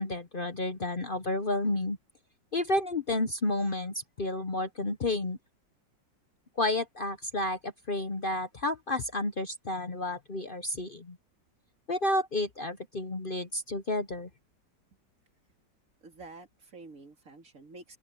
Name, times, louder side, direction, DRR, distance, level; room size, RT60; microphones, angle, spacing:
voice 1, 0.0-2.0 2.5-5.4 6.6-11.2 11.9-14.3, left 2 dB, 40° left, 0.8 m, -31 dB
voice 2, 16.0-18.0, right 3 dB, 45° right, 3.2 m, -49 dB
open air
omnidirectional pair, 2.0 m